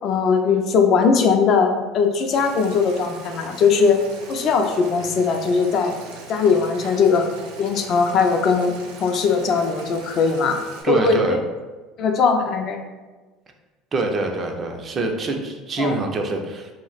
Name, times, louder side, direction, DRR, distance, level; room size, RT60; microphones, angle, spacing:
voice 1, 0.0-4.0 4.3-5.9 6.3-7.3 7.6-8.7 9.0-10.6 10.9-11.4 12.0-12.8 15.8-16.0, left 5 dB, 50° left, 4 dB, 0.4 m, -19 dB
Boiling, 2.3-10.8, right 3 dB, 90° right, 0.5 m, -40 dB
voice 2, 10.8-11.4 13.9-16.7, right 2 dB, 40° right, 3 dB, 0.4 m, -24 dB
2.4 x 2.1 x 3.9 m, 1.2 s
supercardioid pair, 95°, 0 cm